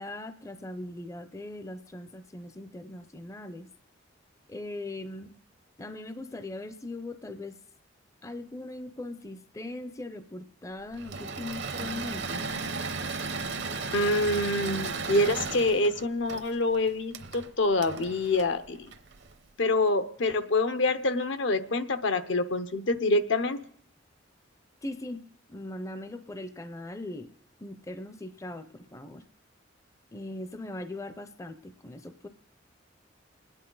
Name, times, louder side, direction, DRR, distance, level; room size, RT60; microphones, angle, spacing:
voice 1, 0.0-3.7 4.5-5.3 5.8-7.6 8.2-12.4 24.8-27.3 27.6-29.2 30.1-32.3, left 2 dB, 15° left, 11 dB, 0.5 m, -40 dB
Engine / Mechanisms, 10.9-19.3, right 4 dB, 65° right, 0.8 m, -35 dB
voice 2, 13.9-18.9 19.6-23.6, left 2 dB, 80° left, 9 dB, 0.8 m, -26 dB
29.0 x 9.8 x 3.9 m, 0.65 s
head